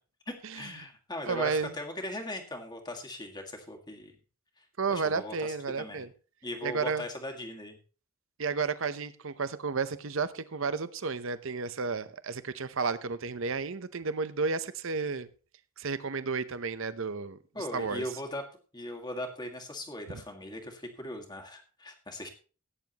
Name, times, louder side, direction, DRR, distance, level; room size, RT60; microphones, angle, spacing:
voice 1, 0.3-4.1 4.6-4.7 4.9-6.1 6.4-7.8 17.5-18.4 18.7-22.3, left 1 dB, 20° left, 3 dB, 1.8 m, -39 dB
voice 2, 1.2-1.7 4.8-6.1 6.6-7.0 8.4-15.3 15.8-17.4 17.7-18.0, right 4 dB, 65° right, 13 dB, 0.8 m, -32 dB
17.0 x 9.5 x 3.0 m, 0.37 s
head